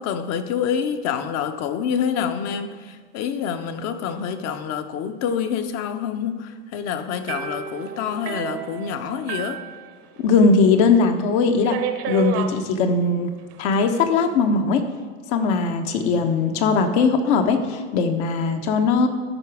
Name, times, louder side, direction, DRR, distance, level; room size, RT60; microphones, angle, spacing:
voice 1, 0.0-9.6, left 7 dB, 45° left, 9 dB, 0.8 m, -27 dB
sound 1, 7.3-10.5 10.8-10.9 11.7-12.6 13.5-14.0, right 10 dB, 40° right, 0.8 m, -31 dB
voice 2, 10.2-11.8 12.1-13.3 13.6-14.8 15.3-19.1, left 4 dB, 65° left, 6 dB, 1.2 m, -19 dB
13.0 x 5.0 x 4.8 m, 1.5 s
supercardioid pair, 120°, 36 cm